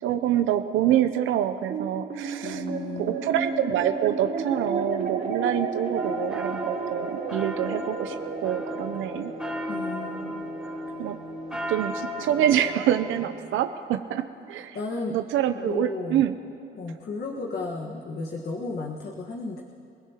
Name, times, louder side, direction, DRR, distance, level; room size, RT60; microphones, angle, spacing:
voice 1, 0.0-2.7 3.0-9.3 11.0-11.2 11.7-14.8 15.1-16.3, right 11 dB, 85° right, 9 dB, 0.6 m, -26 dB
sound 1, 1.7-14.3, right 4 dB, 65° right, 4.5 m, -33 dB
voice 2, 2.4-3.2 9.7-10.5 14.7-15.2 15.5-16.2 16.8-19.6, left 3 dB, 50° left, 0 dB, 1.5 m, -34 dB
sound 2, 6.0-13.2, equal, ahead, 3.3 m, -35 dB
28.5 x 16.5 x 2.9 m, 2.7 s
cardioid pair, 90°, 20 cm